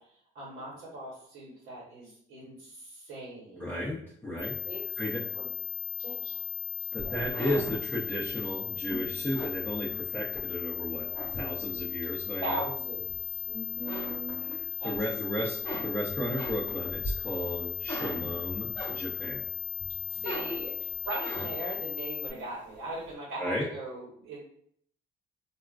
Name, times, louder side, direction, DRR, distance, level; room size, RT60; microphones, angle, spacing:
voice 1, 0.3-3.7 4.7-4.8 5.3-5.5 6.0-6.4 6.8-7.2 12.4-15.0 20.1-24.4, right 1 dB, 80° right, -5 dB, 1.0 m, -39 dB
voice 2, 3.5-4.5 5.0-5.3 6.9-12.7 14.4-19.4 23.4-23.7, left 1 dB, 10° left, -8 dB, 0.7 m, -34 dB
sound 1, 4.4-22.3, left 9 dB, 80° left, 0.7 m, -36 dB
sound 2, 7.0-10.4 10.8-11.9 12.4-13.4 13.7-15.0 15.3-19.4 19.8-21.8, left 1 dB, 25° left, 1.2 m, -40 dB
3.5 x 2.4 x 2.3 m, 0.65 s
cardioid pair, 90°, 20 cm